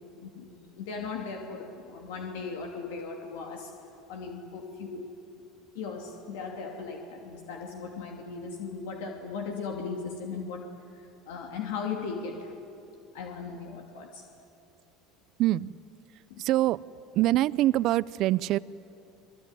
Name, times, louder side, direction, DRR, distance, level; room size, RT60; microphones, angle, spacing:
voice 1, 0.2-3.8 4.1-5.1 5.7-10.7 10.9-12.5 13.1-14.2 16.3-16.4, left 5 dB, 80° left, 2 dB, 2.8 m, -37 dB
voice 2, 15.4-15.8 16.4-16.8 17.1-18.6, right 15 dB, 55° right, 19 dB, 0.6 m, -24 dB
25.5 x 22.0 x 9.9 m, 2.8 s
supercardioid pair, 105°, 0 cm